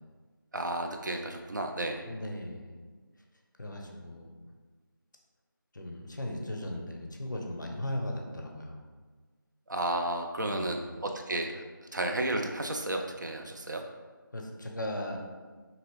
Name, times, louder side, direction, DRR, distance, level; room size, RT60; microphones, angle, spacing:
voice 1, 0.5-2.0 9.7-11.6 11.9-13.8, right 1 dB, 55° right, 3 dB, 0.4 m, -32 dB
voice 2, 2.0-2.7 3.6-4.3 5.7-8.8 10.4-10.8 14.3-15.2, left 1 dB, 60° left, 1 dB, 0.5 m, -37 dB
2.9 x 2.6 x 3.0 m, 1.4 s
figure-of-eight pair, 175°, 12 cm